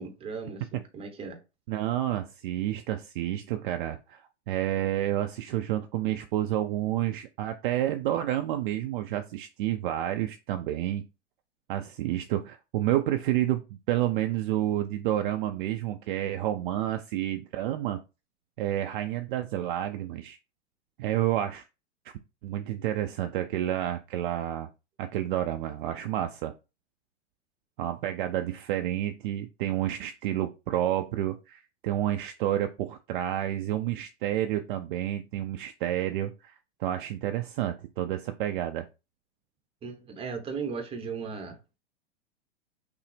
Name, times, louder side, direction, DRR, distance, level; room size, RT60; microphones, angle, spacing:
voice 1, 0.0-1.4 39.8-41.8, right 5 dB, 15° right, 0.8 m, -37 dB
voice 2, 1.7-4.2 4.5-11.0 11.7-18.0 18.6-20.4 21.0-21.6 22.0-22.1 22.4-24.7 25.0-26.5 27.8-36.5 36.8-38.8, right 13 dB, 45° right, 0.4 m, -29 dB
5.6 x 2.0 x 3.3 m
hypercardioid pair, 105°, 36 cm